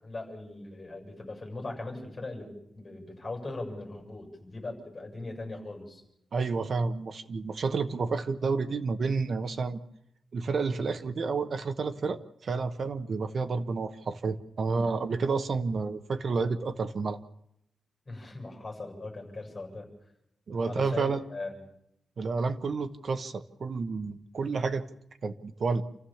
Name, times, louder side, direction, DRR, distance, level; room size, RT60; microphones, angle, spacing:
voice 1, 0.0-6.0 14.8-14.9 18.1-19.9 20.6-21.6, left 2 dB, 25° left, 1 dB, 7.4 m, -39 dB
voice 2, 6.3-9.8 10.3-17.2 20.5-21.2 22.2-24.8 25.2-25.8, right 4 dB, 45° right, 8 dB, 1.1 m, -30 dB
28.5 x 14.5 x 7.2 m, 0.80 s
wide cardioid pair, 175°, 0 cm